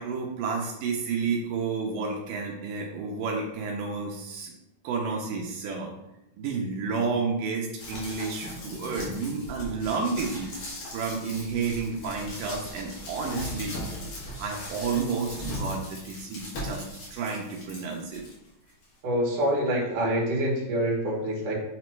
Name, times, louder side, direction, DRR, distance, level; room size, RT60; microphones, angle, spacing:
voice 1, 0.0-4.5 4.8-5.9 6.3-10.7 10.9-13.8 14.4-16.8 17.1-18.2, right 4 dB, 85° right, 0 dB, 2.4 m, -31 dB
sound 1, 7.8-18.3 18.8-18.9, left 1 dB, 65° left, 3.0 m, -38 dB
voice 2, 19.0-21.5, right 1 dB, 55° right, -3 dB, 2.7 m, -26 dB
7.4 x 3.0 x 4.5 m, 0.89 s
omnidirectional pair, 3.7 m